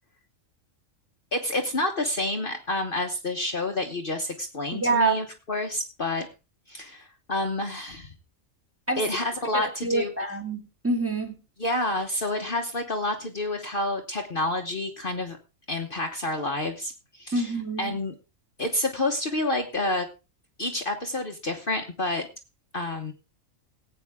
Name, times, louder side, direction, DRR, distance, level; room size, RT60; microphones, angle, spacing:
voice 1, 1.3-6.3 6.7-8.1 9.0-10.1 11.6-15.4 15.7-18.1 18.6-20.1 20.6-22.3 22.7-23.1, left 2 dB, 45° left, 1.2 m, -29 dB
voice 2, 4.7-5.2 8.9-9.0 9.5-11.3 17.3-17.9, right 3 dB, 10° right, 2.0 m, -26 dB
18.5 x 8.4 x 3.6 m
omnidirectional pair, 1.4 m